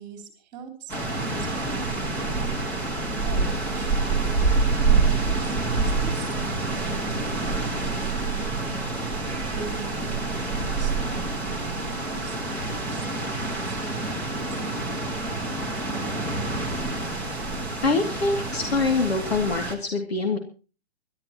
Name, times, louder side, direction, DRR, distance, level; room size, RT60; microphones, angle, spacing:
voice 1, 0.0-2.5 3.2-8.3 9.5-14.6, right 4 dB, 20° right, 5 dB, 4.0 m, -42 dB
sound 1, 0.9-19.7, right 3 dB, 5° left, 1.8 m, -27 dB
voice 2, 17.8-20.4, left 3 dB, 65° left, 3 dB, 2.7 m, -24 dB
25.5 x 12.5 x 3.0 m, 0.35 s
hypercardioid pair, 160°, 33 cm